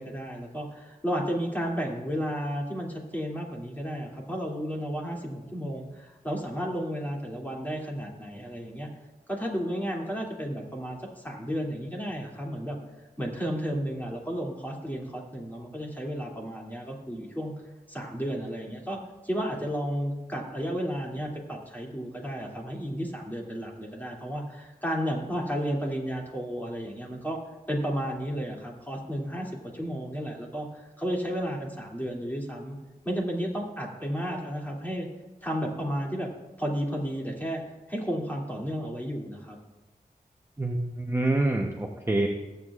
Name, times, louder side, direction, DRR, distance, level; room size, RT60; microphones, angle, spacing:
voice 1, 0.0-8.9 9.3-12.8 13.2-17.5 17.9-19.0 19.2-27.4 27.7-32.8 33.0-35.1 35.4-36.3 36.6-37.6 37.9-39.6, equal, 10° left, -2 dB, 2.6 m, -32 dB
voice 2, 40.6-42.3, right 2 dB, 15° right, 0 dB, 0.9 m, -26 dB
21.5 x 8.1 x 2.4 m, 1.1 s
wide cardioid pair, 60°, 15 cm